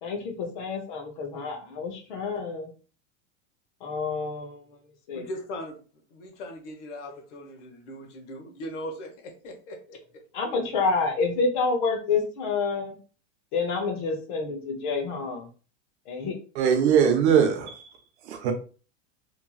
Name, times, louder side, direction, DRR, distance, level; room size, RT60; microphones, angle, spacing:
voice 1, 0.0-2.7 3.8-4.8 5.1-5.2 10.3-13.0 13.5-15.5 16.1-16.3, left 4 dB, 40° left, 0.6 m, -28 dB
voice 2, 5.1-5.8 6.1-10.0, equal, 70° left, 1.0 m, -39 dB
voice 3, 16.6-17.9 18.3-18.5, right 8 dB, 60° right, 0.7 m, -21 dB
3.0 x 2.5 x 2.2 m
supercardioid pair, 180°, 37 cm